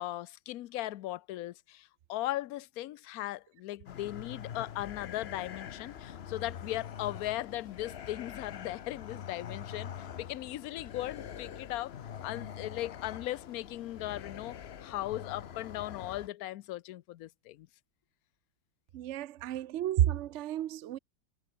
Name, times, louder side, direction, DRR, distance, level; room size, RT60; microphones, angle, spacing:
voice 1, 0.0-11.9 12.2-17.7, left 15 dB, 70° left, 0.9 m, -38 dB
sound 1, 3.9-16.3, left 8 dB, 50° left, 0.7 m, -44 dB
voice 2, 18.9-21.0, right 12 dB, 80° right, 0.6 m, -31 dB
omnidirectional pair, 2.0 m